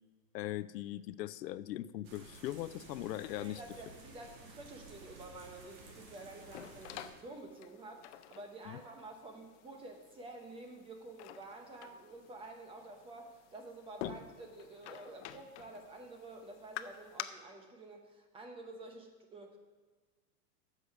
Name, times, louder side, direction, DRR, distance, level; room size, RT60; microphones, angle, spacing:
voice 1, 0.3-3.6 8.7-8.8, left 14 dB, 85° left, 16 dB, 0.6 m, -40 dB
sound 1, 2.0-7.1, right 3 dB, 60° right, 2.6 m, -54 dB
voice 2, 3.4-19.6, right 2 dB, 10° right, 4 dB, 0.7 m, -50 dB
sound 2, 5.8-17.2, left 11 dB, 45° left, 0.6 m, -50 dB
8.3 x 6.5 x 6.6 m, 1.4 s
supercardioid pair, 145°, 49 cm